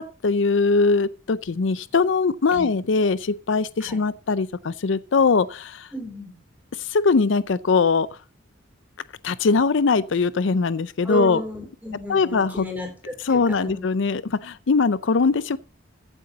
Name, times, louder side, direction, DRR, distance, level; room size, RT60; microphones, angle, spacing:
voice 1, 0.0-5.9 6.8-8.1 9.2-11.4 12.1-12.6 13.2-15.6, left 4 dB, 70° left, 0.5 m, -21 dB
voice 2, 5.9-6.3 11.0-13.8, equal, 10° right, 4.7 m, -33 dB
15.0 x 8.1 x 4.0 m
head